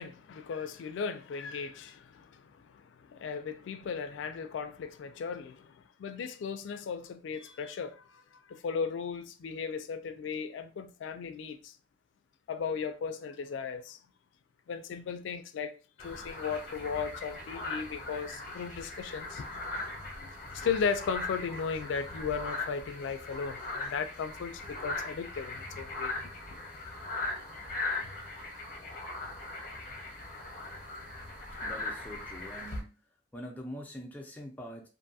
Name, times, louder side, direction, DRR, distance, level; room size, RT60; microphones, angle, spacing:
voice 1, 0.0-11.8 12.5-14.0 14.7-15.7 16.0-19.5 20.1-26.1 26.5-26.7, left 6 dB, 90° left, 0.3 m, -36 dB
sound 1, 16.0-32.8, left 2 dB, 45° left, 0.7 m, -39 dB
voice 2, 31.6-32.9 33.3-34.9, equal, 10° left, 0.4 m, -44 dB
2.5 x 2.2 x 2.6 m
head